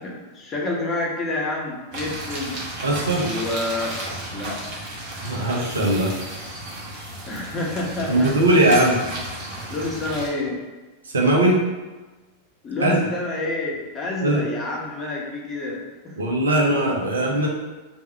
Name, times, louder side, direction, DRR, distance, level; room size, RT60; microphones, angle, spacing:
voice 1, 0.0-2.6 3.1-4.0 4.3-4.6 7.3-8.3 9.4-10.6 12.6-16.1, left 2 dB, 25° left, -2 dB, 1.0 m, -28 dB
sound 1, 1.9-10.3, right 1 dB, 45° right, 1.3 m, -33 dB
voice 2, 2.8-3.3 5.2-6.1 8.1-9.0 11.0-11.6 12.8-13.1 14.2-14.5 16.2-17.5, right 1 dB, 70° right, -2 dB, 0.8 m, -19 dB
3.5 x 2.7 x 4.4 m, 1.2 s
figure-of-eight pair, 90°, 0 cm